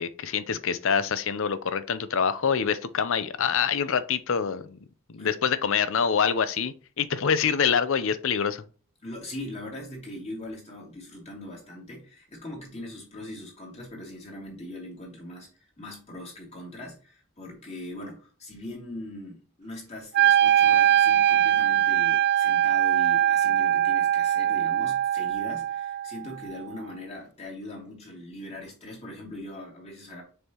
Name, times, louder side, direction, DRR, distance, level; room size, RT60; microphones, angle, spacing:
voice 1, 0.0-4.8 5.1-8.6, left 6 dB, 65° left, 0.6 m, -26 dB
voice 2, 9.0-15.5 15.8-30.2, left 1 dB, 30° left, 2.9 m, -40 dB
Wind instrument woodwind instrument, 20.1-26.2, right 10 dB, 50° right, 0.3 m, -22 dB
6.8 x 5.5 x 2.9 m
head